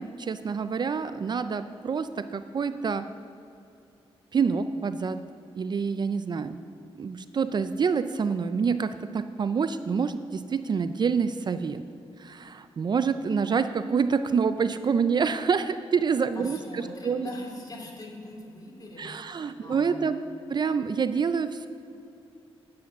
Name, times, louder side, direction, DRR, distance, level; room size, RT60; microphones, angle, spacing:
voice 1, 0.0-3.1 4.3-5.2 5.6-6.6 7.0-11.8 12.2-17.3 19.0-20.2 20.5-21.7, right 6 dB, 45° right, 12 dB, 0.4 m, -27 dB
voice 2, 16.3-20.0, left 1 dB, 40° left, -1 dB, 2.5 m, -41 dB
8.9 x 8.6 x 6.0 m, 2.6 s
cardioid pair, 90°, 10 cm